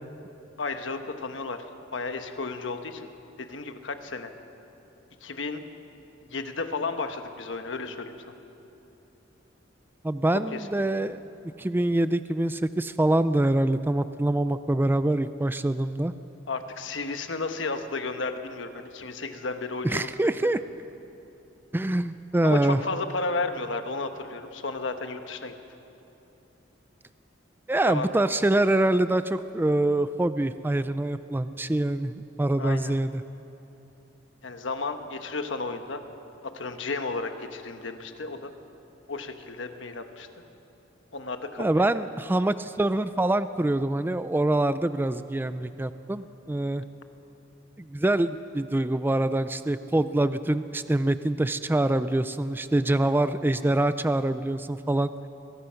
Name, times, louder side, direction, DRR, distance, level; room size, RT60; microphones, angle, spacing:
voice 1, 0.6-1.6 1.9-3.1 3.4-4.3 5.2-5.6 6.3-8.3 10.5-10.7 16.5-20.1 22.4-25.5 27.8-28.1 32.6-32.9 34.4-36.0 36.4-38.5 39.1-40.3 41.1-41.7, left 3 dB, 70° left, 7 dB, 1.2 m, -33 dB
voice 2, 10.0-11.2 11.6-16.1 19.8-20.6 21.7-22.8 27.7-33.2 41.6-46.8 47.8-55.1, right 1 dB, 10° right, 12 dB, 0.4 m, -25 dB
22.5 x 20.5 x 5.8 m, 3.0 s
head